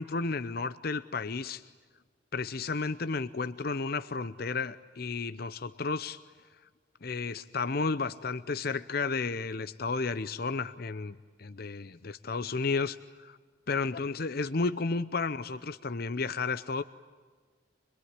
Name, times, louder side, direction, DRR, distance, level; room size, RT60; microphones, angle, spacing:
voice 1, 0.0-1.6 2.3-6.2 7.0-13.4 13.7-16.8, left 4 dB, 55° left, 13 dB, 0.7 m, -32 dB
25.5 x 22.5 x 9.7 m, 1.5 s
head